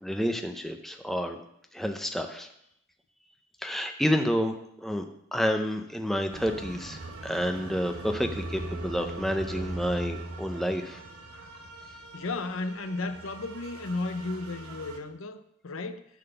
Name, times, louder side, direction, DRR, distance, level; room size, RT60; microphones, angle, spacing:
voice 1, 0.0-1.4 1.7-2.5 3.6-5.1 5.3-11.0, equal, ahead, 4 dB, 0.6 m, -29 dB
sound 1, 6.3-15.0, right 2 dB, 85° right, 1.2 m, -40 dB
voice 2, 12.1-16.1, left 3 dB, 70° left, 10 dB, 0.7 m, -34 dB
11.0 x 4.1 x 6.8 m, 0.75 s
head